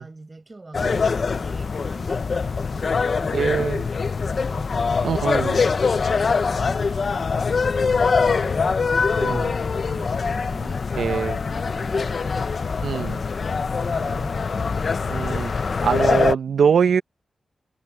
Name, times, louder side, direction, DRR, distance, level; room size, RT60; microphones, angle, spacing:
voice 1, 0.0-3.9 4.3-5.6 6.2-10.8 11.4-13.2 13.8-15.6, right 2 dB, 25° right, 4.7 m, -43 dB
sound 1, 0.7-16.4, left 5 dB, 45° left, 0.5 m, -23 dB
voice 2, 3.3-3.8 5.0-5.7 9.2-9.5 11.0-11.4 12.8-13.2 15.1-15.5 15.8-17.0, right 7 dB, 75° right, 0.7 m, -23 dB
wide cardioid pair, 170°, 0 cm